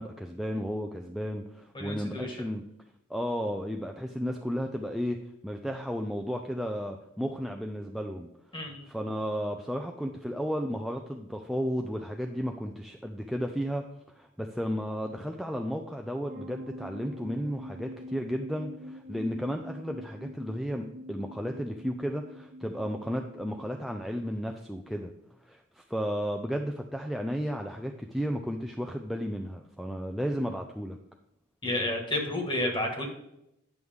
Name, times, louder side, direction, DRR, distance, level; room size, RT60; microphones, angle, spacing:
voice 1, 0.0-2.6 3.1-13.8 14.1-25.1 25.4-31.0, equal, ahead, 2 dB, 0.4 m, -33 dB
voice 2, 1.7-2.3 8.5-8.8 31.6-33.1, left 1 dB, 25° left, 3 dB, 1.6 m, -31 dB
sound 1, 16.3-23.7, equal, 45° right, 0.9 m, -45 dB
9.5 x 6.3 x 3.5 m, 0.82 s
head